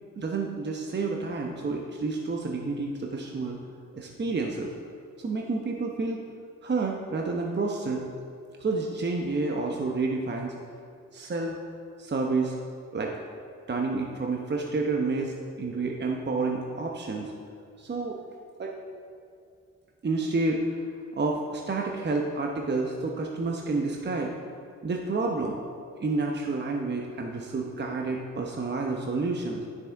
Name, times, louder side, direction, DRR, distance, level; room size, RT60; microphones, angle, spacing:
voice 1, 0.2-3.6 3.9-4.7 5.2-6.2 6.6-8.0 8.6-10.5 11.1-11.6 12.0-12.6 12.9-13.1 13.7-17.3 17.8-18.2 18.6-18.7 20.0-20.8 21.1-24.3 24.8-25.6 26.0-29.6, right 3 dB, 35° right, 1 dB, 0.9 m, -29 dB
10.5 x 6.2 x 3.5 m, 2.3 s
supercardioid pair, 55°, 31 cm